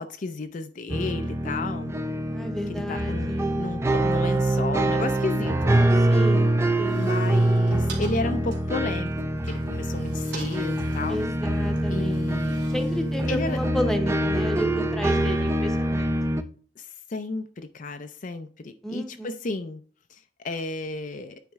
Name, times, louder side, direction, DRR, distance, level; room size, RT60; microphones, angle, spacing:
voice 1, 0.0-1.9 2.7-5.8 6.9-11.2 11.8-12.6 13.3-13.6 16.8-19.8 20.1-21.4, left 3 dB, 45° left, 0.5 m, -33 dB
sound 1, 0.9-16.4, right 1 dB, 15° right, 0.5 m, -24 dB
voice 2, 2.3-3.6 6.0-6.5 6.8-7.1 11.1-12.3 12.7-16.2 18.8-19.3, equal, 5° left, 0.9 m, -32 dB
Opening and closing off a metal framed window, 6.7-13.7, right 4 dB, 70° right, 2.5 m, -45 dB
9.4 x 4.2 x 3.5 m
head